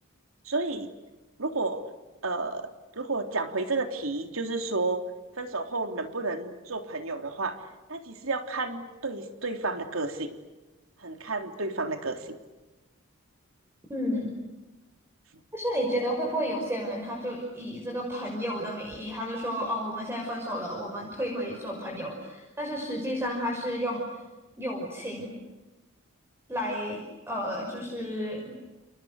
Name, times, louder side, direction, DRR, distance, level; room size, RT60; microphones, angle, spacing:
voice 1, 0.4-0.9 1.4-1.8 2.2-5.0 5.4-7.6 7.9-10.3 11.0-12.4, right 3 dB, 70° right, 5 dB, 3.4 m, -31 dB
voice 2, 13.9-14.3 15.5-24.0 24.6-25.3 26.5-27.0 27.3-28.4, equal, 10° right, -1 dB, 5.9 m, -31 dB
30.0 x 29.5 x 6.6 m, 1.1 s
head